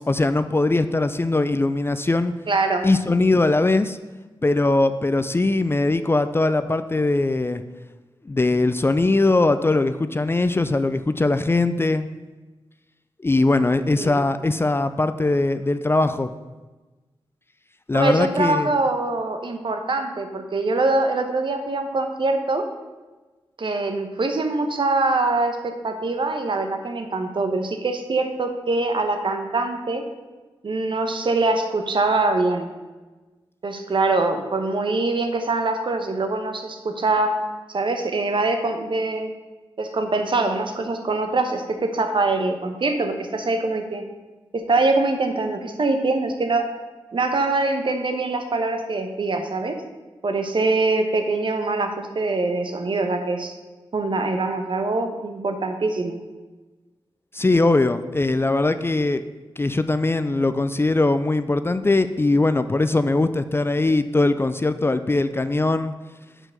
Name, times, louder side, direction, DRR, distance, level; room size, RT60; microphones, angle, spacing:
voice 1, 0.1-2.3 2.8-4.0 4.4-7.6 8.3-12.1 13.2-16.3 17.9-18.7 57.3-59.2 59.6-65.9, left 2 dB, 25° left, 11 dB, 0.4 m, -21 dB
voice 2, 2.5-2.9 13.9-14.2 17.9-22.6 23.6-25.6 25.8-30.0 30.6-32.7 33.6-37.3 37.7-39.3 39.8-44.0 44.5-46.7 47.1-49.8 50.2-53.5 53.9-56.2, right 3 dB, 55° right, 5 dB, 1.0 m, -23 dB
5.8 x 4.7 x 6.6 m, 1.2 s
cardioid pair, 55°, 10 cm